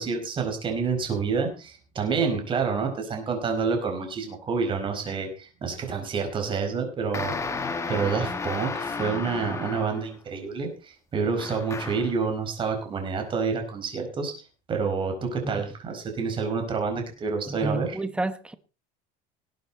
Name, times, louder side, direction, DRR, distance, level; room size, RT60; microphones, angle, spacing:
voice 1, 0.0-7.3 7.9-17.9, right 5 dB, 25° right, 4.8 m, -28 dB
sound 1, 7.1-10.2 11.4-12.2, left 4 dB, 15° left, 1.5 m, -33 dB
voice 2, 17.5-18.5, right 2 dB, 5° right, 1.1 m, -30 dB
19.5 x 9.3 x 4.3 m
cardioid pair, 155°, 19 cm